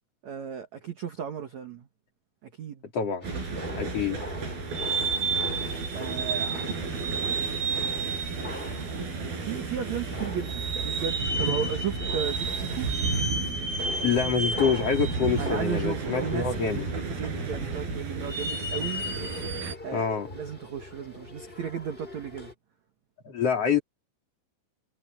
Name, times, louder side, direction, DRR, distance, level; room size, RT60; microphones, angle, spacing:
voice 1, 0.2-1.9 2.4-2.8 5.9-6.8 9.4-12.9 15.4-19.0 19.8-20.1 20.3-22.5, right 8 dB, 70° right, 1.7 m, -35 dB
voice 2, 2.9-3.2 3.7-4.2 14.0-16.9 19.9-20.3 23.2-23.8, left 6 dB, 35° left, 3.3 m, -26 dB
sound 1, 3.2-22.5, left 1 dB, 10° left, 4.3 m, -42 dB
sound 2, 3.2-19.8, right 4 dB, 50° right, 8.0 m, -31 dB
sound 3, 11.2-18.0, right 4 dB, 85° right, 9.2 m, -34 dB
omnidirectional pair, 5.7 m